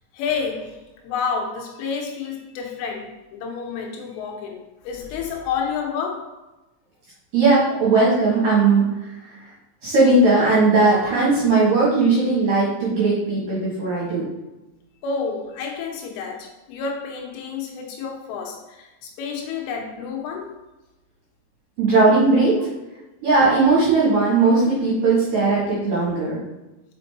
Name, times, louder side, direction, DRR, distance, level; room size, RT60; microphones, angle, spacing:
voice 1, 0.1-6.4 15.0-20.6 22.5-22.7, left 5 dB, 80° left, 0 dB, 3.4 m, -30 dB
voice 2, 7.3-9.4 9.8-14.3 21.8-22.7 23.2-26.4, right 3 dB, 55° right, -7 dB, 2.5 m, -18 dB
6.8 x 5.3 x 2.9 m, 1.0 s
omnidirectional pair, 5.8 m